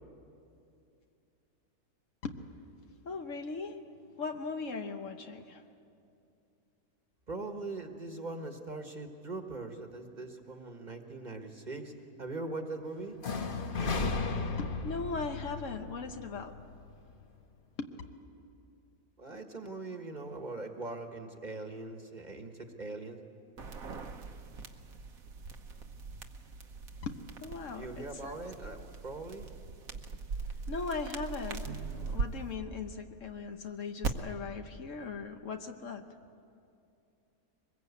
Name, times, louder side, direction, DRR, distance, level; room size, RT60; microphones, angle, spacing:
voice 1, 3.0-3.9 4.2-5.6 14.6-16.5 17.8-17.9 27.0-28.4 30.7-36.1, left 4 dB, 60° left, 6 dB, 1.3 m, -39 dB
voice 2, 7.3-13.2 19.2-23.2 27.7-29.5, right 2 dB, 30° right, 5 dB, 1.5 m, -41 dB
sound 1, 13.2-17.1, left 3 dB, 40° left, 1.1 m, -35 dB
sound 2, 23.6-32.2 34.0-34.1, right 4 dB, 75° right, 1.5 m, -40 dB
24.0 x 21.0 x 8.3 m, 2.6 s
omnidirectional pair, 1.5 m